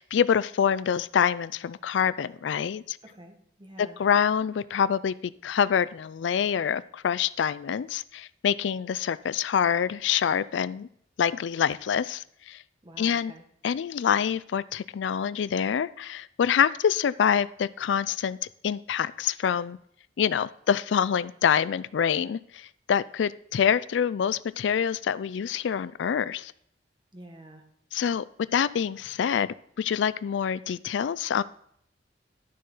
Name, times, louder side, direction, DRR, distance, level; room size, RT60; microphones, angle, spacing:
voice 1, 0.0-3.0 3.8-5.1 5.4-10.9 11.2-12.6 13.0-13.3 13.6-18.4 18.6-19.8 20.2-26.5 27.9-28.2 28.5-31.4, left 8 dB, 80° left, 18 dB, 0.4 m, -26 dB
voice 2, 3.0-4.0 12.8-13.4 27.1-27.6, right 1 dB, 25° right, 4 dB, 1.4 m, -47 dB
11.5 x 6.5 x 4.0 m, 0.68 s
head